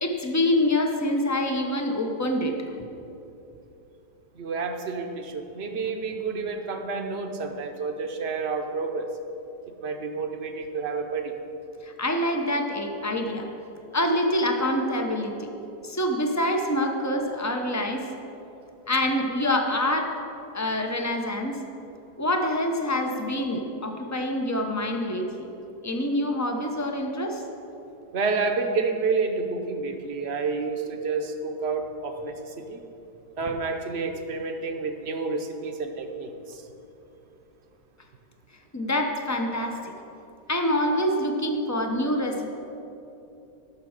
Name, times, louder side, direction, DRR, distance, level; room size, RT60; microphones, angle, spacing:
voice 1, 0.0-2.5 11.8-13.5 13.9-15.5 15.8-18.1 18.9-20.1 20.5-21.6 22.2-25.5 25.8-27.4 38.7-39.8 40.5-42.5, left 1 dB, 20° left, 3 dB, 0.4 m, -26 dB
voice 2, 4.4-9.1 9.8-11.3 28.1-32.8 33.4-36.6, right 4 dB, 50° right, 5 dB, 0.9 m, -29 dB
13.5 x 6.3 x 6.5 m, 2.9 s
omnidirectional pair, 1.9 m